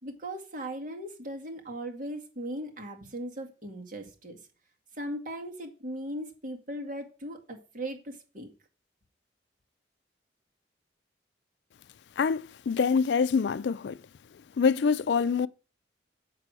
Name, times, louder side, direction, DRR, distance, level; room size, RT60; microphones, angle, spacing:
voice 1, 0.0-4.4 4.9-8.5, right 1 dB, 50° right, 1.9 m, -38 dB
voice 2, 12.2-14.0 14.6-15.5, left 5 dB, 70° left, 0.4 m, -25 dB
7.5 x 6.3 x 6.2 m
head